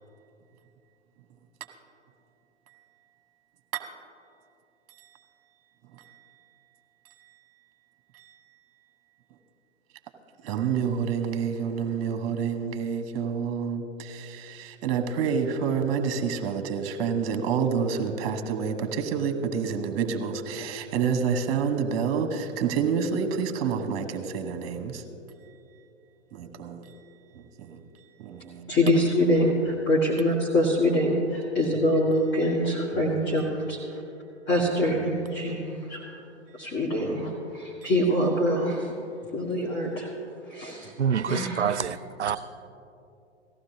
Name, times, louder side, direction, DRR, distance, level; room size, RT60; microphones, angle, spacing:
voice 1, 10.4-25.0 26.3-26.9 27.3-27.8 28.2-28.7 32.9-33.0 37.0-37.2 37.8-37.9, right 6 dB, 35° right, 1.2 m, -28 dB
voice 2, 28.7-33.8 34.5-36.1 36.5-38.9 39.3-40.1 40.5-40.9 41.3-41.9, left 1 dB, 30° left, 1.8 m, -25 dB
voice 3, 41.0-42.4, right 8 dB, 80° right, 0.5 m, -27 dB
18.0 x 14.5 x 2.8 m
figure-of-eight pair, 110°, 34 cm